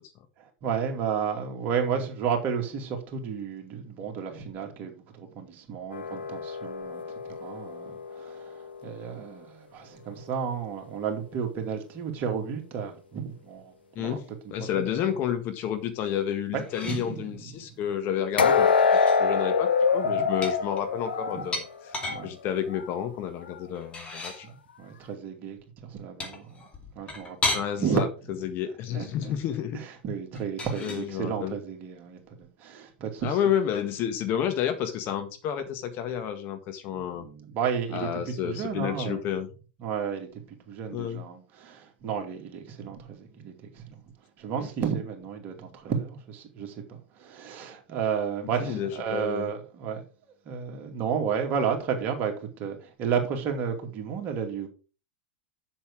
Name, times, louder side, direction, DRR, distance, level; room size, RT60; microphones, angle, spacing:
voice 1, 0.4-14.2 14.6-15.1 16.5-17.8 20.0-20.3 21.3-21.4 22.1-22.3 24.4-26.6 26.9-28.0 28.9-29.3 29.7-33.4 36.9-39.2 39.8-44.0 44.4-54.7, right 7 dB, 40° right, 2.5 m, -32 dB
sound 1, 5.9-9.0 18.4-22.3 22.7-22.9 23.5-23.6, left 5 dB, 85° left, 0.8 m, -26 dB
voice 2, 13.9-18.7 19.2-21.6 22.2-24.5 27.5-28.1 28.4-29.8 30.8-31.5 33.2-37.2 37.9-39.5 40.9-41.2 44.6-44.7 48.6-49.5, left 9 dB, 40° left, 1.6 m, -30 dB
sound 2, 16.6-17.1 18.6-19.2 20.4-22.2 23.7-24.4 26.2-27.7 30.3-31.0, left 2 dB, 20° left, 2.6 m, -34 dB
7.4 x 7.1 x 4.6 m
hypercardioid pair, 100°, 5 cm